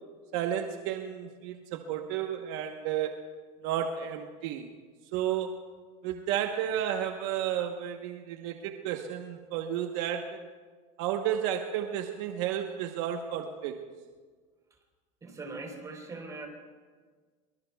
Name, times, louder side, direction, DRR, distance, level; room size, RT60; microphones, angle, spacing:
voice 1, 0.3-3.2 3.6-4.7 5.1-5.6 6.0-10.4 11.0-13.8, right 10 dB, 70° right, 5 dB, 1.1 m, -32 dB
voice 2, 15.2-16.5, right 3 dB, 20° right, 2 dB, 3.9 m, -41 dB
24.0 x 23.0 x 2.3 m, 1.5 s
supercardioid pair, 120°, 17 cm